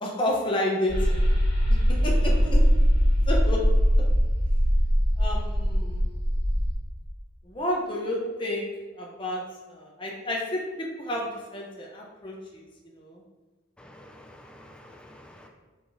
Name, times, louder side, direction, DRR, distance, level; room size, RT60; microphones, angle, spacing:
voice 1, 0.0-1.2 2.0-2.6 3.3-3.6 5.2-6.1 7.5-8.6 9.0-9.4 9.7-12.6 13.0-13.2, left 1 dB, 25° left, -2 dB, 0.8 m, -30 dB
sound 1, 0.9-6.8, equal, 55° left, 1.6 m, -21 dB
voice 2, 13.8-15.5, left 1 dB, 5° left, 2 dB, 0.4 m, -49 dB
7.4 x 4.9 x 2.7 m, 1.3 s
head